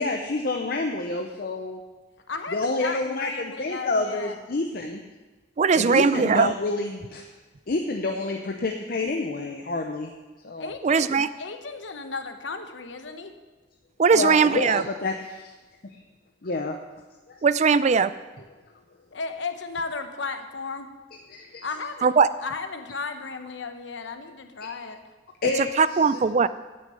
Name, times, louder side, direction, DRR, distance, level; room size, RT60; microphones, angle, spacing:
voice 1, 0.0-1.8 2.5-5.0 5.7-7.3 7.7-10.1 10.4-10.7 14.1-15.5 15.8-16.0 16.4-16.8 17.3-17.4 21.3-21.6 25.4-26.0, left 3 dB, 55° left, 3 dB, 0.7 m, -28 dB
voice 2, 2.3-4.4 10.6-13.3 19.1-20.9 21.6-25.0, left 4 dB, 85° left, 7 dB, 0.9 m, -35 dB
voice 3, 5.6-6.5 10.8-11.3 14.0-14.8 17.4-18.1 22.0-22.3 25.6-26.5, right 5 dB, 40° right, 15 dB, 0.4 m, -20 dB
8.9 x 6.4 x 8.3 m, 1.2 s
head